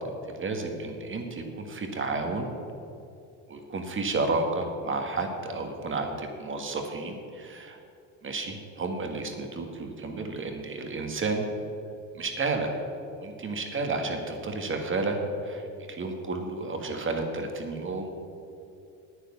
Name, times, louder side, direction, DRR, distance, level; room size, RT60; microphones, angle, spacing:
voice 1, 0.4-2.5 3.5-7.8 8.2-11.5 12.1-12.7 13.2-15.2 15.4-18.1, right 3 dB, 30° right, 4 dB, 1.9 m, -31 dB
9.6 x 9.1 x 7.2 m, 2.6 s
supercardioid pair, 100°, 41 cm